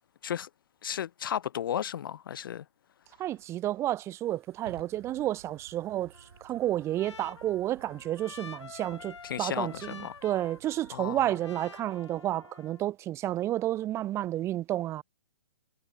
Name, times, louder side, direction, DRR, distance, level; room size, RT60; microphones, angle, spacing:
voice 1, 0.8-2.6 9.2-10.1 10.9-11.2, left 9 dB, 45° left, 0.4 m, -34 dB
Fire, 3.1-12.1, right 8 dB, 55° right, 7.0 m, -56 dB
voice 2, 3.2-6.1 6.4-15.0, right 13 dB, 15° right, 1.0 m, -31 dB
Trumpet, 6.1-12.9, left 6 dB, 65° left, 4.4 m, -49 dB
figure-of-eight pair, 125°, 16 cm